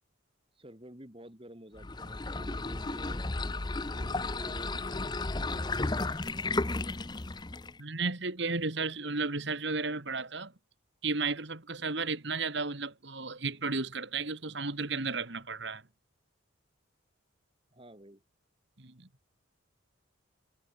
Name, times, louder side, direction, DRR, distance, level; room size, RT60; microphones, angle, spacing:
voice 1, 0.6-3.2 3.9-5.8 17.7-18.2, equal, 25° right, 3.1 m, -50 dB
Bathtub Unfilling, 1.8-7.8, left 2 dB, 20° left, 0.7 m, -33 dB
voice 2, 7.8-10.5 11.0-15.8 18.8-19.1, right 4 dB, 55° right, 2.1 m, -33 dB
head